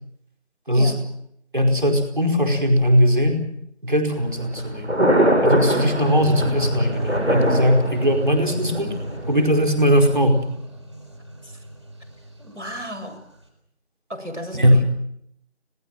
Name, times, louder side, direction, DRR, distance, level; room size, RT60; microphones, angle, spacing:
voice 1, 1.5-3.4 3.8-4.9 5.4-10.4 14.5-14.8, equal, 45° right, 3 dB, 4.8 m, -19 dB
Thunder, 4.1-10.1, equal, 70° right, 7.9 m, -23 dB
sound 1, 6.0-13.2, right 1 dB, 25° right, 3.9 m, -31 dB
voice 2, 12.4-13.2 14.1-14.8, equal, 90° right, 6 dB, 7.5 m, -34 dB
26.0 x 18.5 x 7.7 m, 0.73 s
figure-of-eight pair, 175°, 35 cm